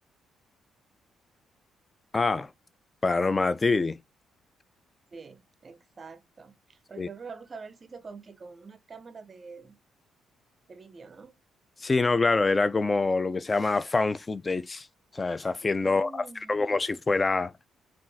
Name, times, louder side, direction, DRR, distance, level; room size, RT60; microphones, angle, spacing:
voice 1, 2.1-2.5 3.0-4.0 7.0-7.1 11.8-14.9 15.1-16.1 16.5-17.5, left 3 dB, 25° left, 0.3 m, -25 dB
voice 2, 5.1-9.8 10.7-11.4 15.8-16.6, right 4 dB, 35° right, 0.5 m, -45 dB
2.5 x 2.4 x 3.8 m
cardioid pair, 90°, 0 cm